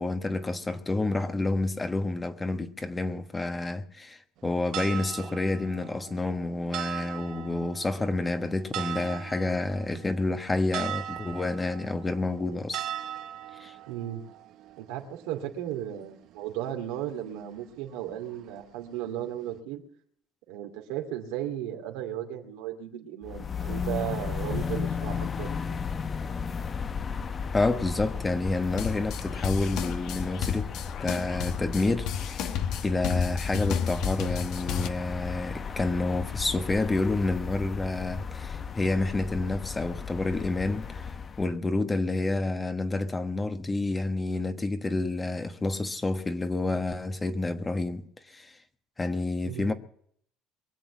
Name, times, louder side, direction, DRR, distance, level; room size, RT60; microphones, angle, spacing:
voice 1, 0.0-12.8 13.6-13.7 27.5-30.7 31.0-32.5 32.8-41.1 41.4-48.5 49.0-49.7, left 2 dB, 20° left, 1.3 m, -29 dB
sound 1, 4.4-19.6, right 11 dB, 65° right, 1.0 m, -40 dB
voice 2, 13.9-14.2 14.8-19.8 20.5-25.8 49.4-49.7, right 11 dB, 85° right, 2.4 m, -35 dB
sound 2, 23.2-41.5, left 6 dB, 35° left, 0.8 m, -35 dB
sound 3, 28.7-34.9, left 8 dB, 65° left, 1.1 m, -32 dB
22.5 x 7.9 x 7.3 m
supercardioid pair, 90°, 0 cm